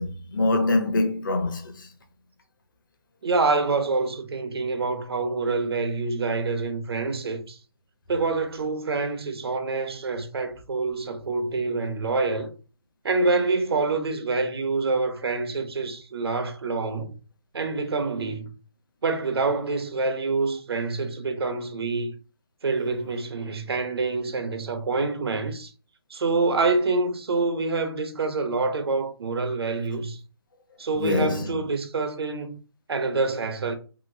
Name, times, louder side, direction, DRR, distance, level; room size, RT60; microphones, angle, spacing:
voice 1, 0.0-1.9 31.0-31.5, left 2 dB, 55° left, 0.7 m, -24 dB
voice 2, 3.2-7.6 8.1-12.5 13.0-17.1 17.5-18.5 19.0-22.1 22.6-25.7 26.1-30.2 30.8-32.6 32.9-33.7, right 3 dB, 75° right, 0.7 m, -26 dB
2.9 x 2.8 x 2.6 m
hypercardioid pair, 170°, 13 cm